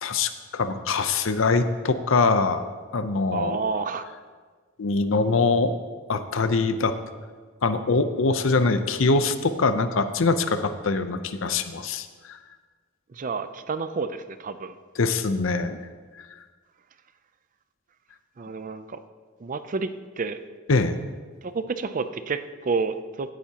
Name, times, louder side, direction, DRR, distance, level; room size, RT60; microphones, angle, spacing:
voice 1, 0.0-2.7 2.9-3.6 4.8-5.7 6.1-6.9 7.6-12.4 15.0-15.8 20.7-21.0, left 3 dB, 65° left, 10 dB, 0.6 m, -23 dB
voice 2, 3.3-4.0 13.1-14.7 18.4-19.0 19.4-19.9 20.2-20.4 21.4-23.3, right 4 dB, 40° right, 11 dB, 0.4 m, -29 dB
16.0 x 9.2 x 2.9 m, 1.5 s
head